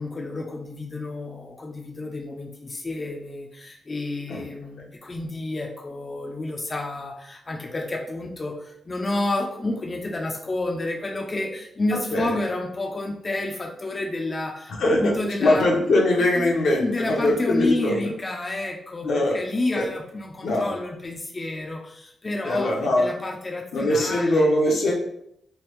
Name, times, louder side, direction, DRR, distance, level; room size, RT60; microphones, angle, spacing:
voice 1, 0.0-15.7 16.4-24.5 24.8-24.9, left 2 dB, 30° left, 0 dB, 0.5 m, -30 dB
voice 2, 14.8-15.1 15.4-18.1 19.0-19.4 19.7-19.9 20.4-20.8 22.4-23.1 23.7-24.9, left 1 dB, 75° left, -1 dB, 0.7 m, -21 dB
3.3 x 2.3 x 3.0 m, 0.76 s
cardioid pair, 80°, 0 cm